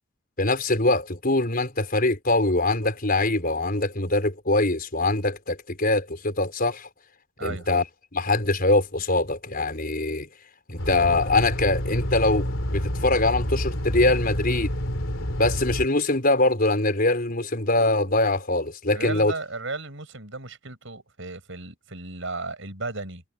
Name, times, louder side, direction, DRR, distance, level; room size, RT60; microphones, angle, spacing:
voice 1, 0.4-6.9 7.4-7.8 8.1-10.3 10.7-14.7 15.4-19.3, left 2 dB, 45° left, 5.4 m, -23 dB
sound 1, 10.8-15.9, equal, 70° left, 4.4 m, -28 dB
voice 2, 18.9-23.2, right 3 dB, 65° right, 7.9 m, -35 dB
head